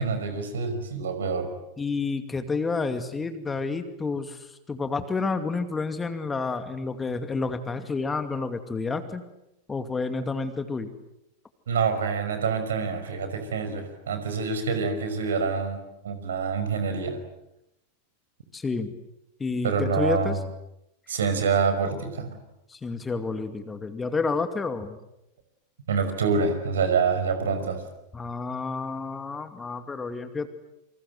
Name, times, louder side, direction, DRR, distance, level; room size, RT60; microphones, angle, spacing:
voice 1, 0.0-1.5 11.7-17.2 19.6-20.4 21.1-22.3 25.9-27.8, right 5 dB, 65° right, 8 dB, 5.5 m, -26 dB
voice 2, 1.8-9.2 9.7-10.9 18.5-18.9 19.4-20.4 22.7-25.0 28.1-30.5, left 4 dB, 15° left, 9 dB, 2.4 m, -30 dB
28.5 x 26.0 x 7.9 m, 0.86 s
figure-of-eight pair, 90°, 0 cm